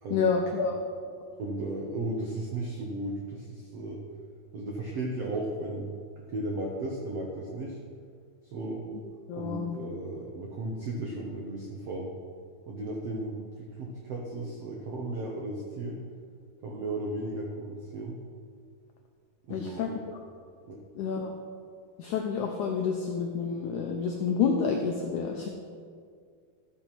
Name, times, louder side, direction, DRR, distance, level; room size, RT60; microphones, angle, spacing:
voice 1, 0.1-0.7 9.3-9.8 19.5-19.9 21.0-21.3 22.0-25.5, left 6 dB, 85° left, 2 dB, 1.7 m, -29 dB
voice 2, 1.4-4.0 4.5-7.8 8.5-8.8 9.3-12.1 12.7-16.0 16.6-18.2 19.4-20.0 20.7-20.8, right 2 dB, 85° right, -1 dB, 1.4 m, -35 dB
13.5 x 5.5 x 6.0 m, 2.1 s
omnidirectional pair, 4.5 m